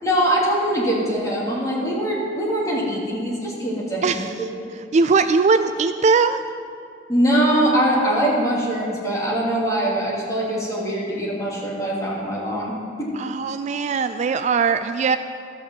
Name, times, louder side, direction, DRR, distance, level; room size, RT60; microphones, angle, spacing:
voice 1, 0.0-4.5 7.1-13.1, right 1 dB, 20° left, -6 dB, 2.7 m, -22 dB
voice 2, 4.0-4.5 4.9-6.4 13.1-15.2, right 4 dB, 40° right, 10 dB, 0.3 m, -20 dB
13.5 x 5.5 x 7.5 m, 2.5 s
head